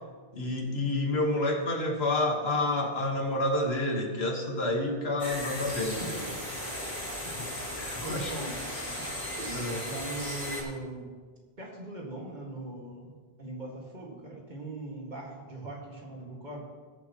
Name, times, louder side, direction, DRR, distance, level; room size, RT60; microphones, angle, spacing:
voice 1, 0.3-6.4 7.4-7.5 7.7-8.3 9.5-9.8, left 2 dB, 75° left, 2 dB, 1.8 m, -29 dB
sound 1, 5.2-10.6, left 1 dB, 30° left, 2.6 m, -36 dB
voice 2, 7.2-7.7 8.0-8.7 9.0-9.1 9.4-11.1 11.6-16.6, right 2 dB, 45° right, -2 dB, 2.1 m, -41 dB
19.5 x 7.1 x 3.0 m, 1.5 s
omnidirectional pair, 1.1 m